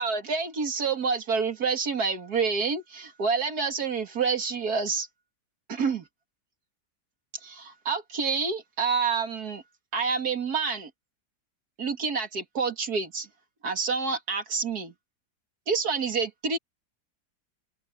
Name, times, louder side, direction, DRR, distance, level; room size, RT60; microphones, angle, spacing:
voice 1, 0.0-5.1 5.7-6.1 7.4-9.6 9.9-10.9 11.8-13.3 13.6-14.9 15.7-16.6, right 5 dB, 65° right, 2.7 m, -28 dB
omnidirectional pair, 1.8 m